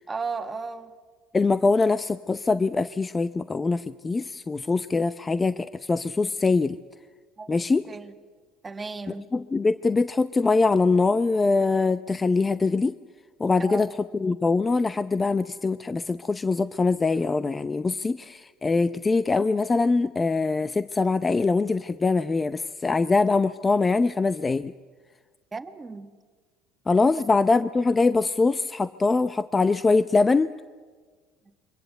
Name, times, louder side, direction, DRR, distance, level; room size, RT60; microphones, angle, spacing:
voice 1, 0.1-0.9 7.4-7.6 7.9-8.1 8.6-9.3 13.6-13.8 25.5-26.1 27.2-27.3, right 4 dB, 20° right, 7 dB, 1.9 m, -34 dB
voice 2, 1.3-6.8 7.5-7.8 9.3-12.9 13.4-13.9 14.1-24.7 26.9-30.5, left 3 dB, 20° left, 13 dB, 0.7 m, -23 dB
27.0 x 24.0 x 8.1 m, 1.5 s
supercardioid pair, 85°, 0 cm